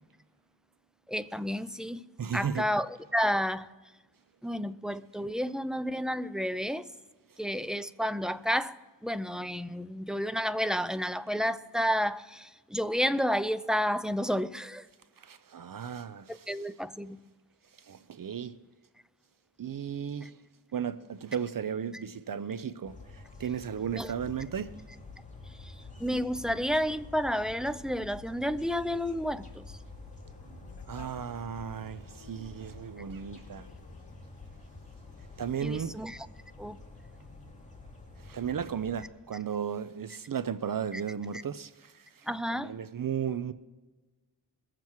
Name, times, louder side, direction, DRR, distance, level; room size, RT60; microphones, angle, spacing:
voice 1, 1.1-2.1 2.3-3.7 4.4-6.9 7.4-8.8 9.0-14.9 16.3-17.2 21.9-22.0 23.9-24.1 25.6-25.7 26.0-29.7 35.6-36.3 36.6-36.8 40.9-41.0 42.3-42.7, equal, ahead, 0.4 m, -31 dB
voice 2, 2.2-2.7 15.2-16.6 17.8-18.5 19.6-20.4 20.7-24.7 30.5-33.7 35.4-36.0 38.2-43.5, right 8 dB, 60° right, 0.6 m, -35 dB
sound 1, 22.8-39.1, left 3 dB, 20° left, 2.3 m, -48 dB
Conversation, 30.2-35.5, left 5 dB, 85° left, 1.2 m, -55 dB
21.0 x 7.5 x 4.6 m
wide cardioid pair, 80°, 39 cm